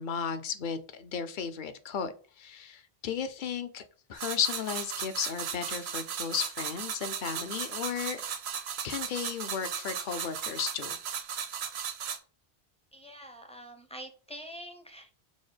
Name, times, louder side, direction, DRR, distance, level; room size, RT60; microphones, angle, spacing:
voice 1, 0.0-3.8 4.1-8.2 8.8-11.0, left 7 dB, 55° left, 10 dB, 0.6 m, -34 dB
sound 1, 4.2-12.2, right 7 dB, 75° right, 0.9 m, -36 dB
voice 2, 12.9-15.1, equal, 10° left, 4 dB, 0.4 m, -45 dB
6.2 x 2.1 x 3.3 m, 0.39 s
omnidirectional pair, 1.1 m